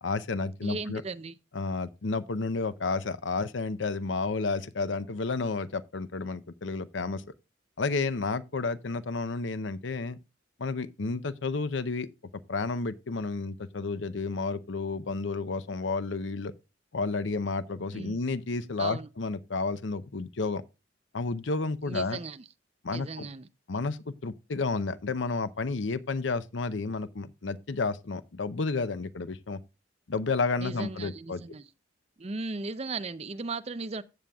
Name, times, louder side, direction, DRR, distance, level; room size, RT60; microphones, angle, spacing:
voice 1, 0.0-1.0 1.5-7.2 7.8-10.2 10.6-12.1 12.5-16.5 16.9-20.6 21.1-22.2 22.8-23.3 23.7-29.6 30.1-31.4, left 3 dB, 85° left, 0.7 m, -31 dB
voice 2, 0.6-1.3 17.9-18.2 18.8-19.1 21.9-22.4 22.9-23.5 30.6-31.6 32.2-34.0, right 3 dB, 35° right, 0.5 m, -36 dB
15.0 x 7.0 x 2.3 m
head